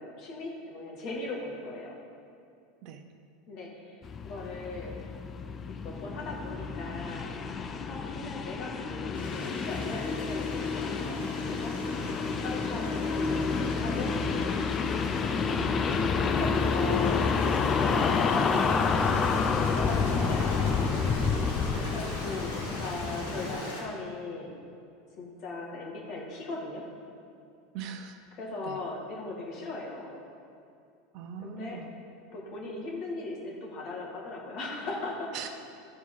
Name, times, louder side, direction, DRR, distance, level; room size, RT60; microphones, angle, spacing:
voice 1, 0.0-2.0 3.5-4.0 4.2-5.1 5.8-7.4 7.9-11.8 12.4-14.1 15.0-20.5 21.9-24.6 25.2-26.8 28.4-30.2 31.4-31.8 32.3-35.3, left 2 dB, 50° left, -2 dB, 2.1 m, -38 dB
sound 1, 4.0-23.6, left 5 dB, 30° left, 0.6 m, -29 dB
Stream, 9.1-23.8, left 2 dB, 85° left, 2.0 m, -41 dB
voice 2, 12.0-12.4 27.7-28.2 28.6-28.8 31.1-31.9 35.3-35.5, right 6 dB, 55° right, 7 dB, 0.7 m, -41 dB
13.0 x 4.6 x 5.5 m, 2.5 s
hypercardioid pair, 85°, 0 cm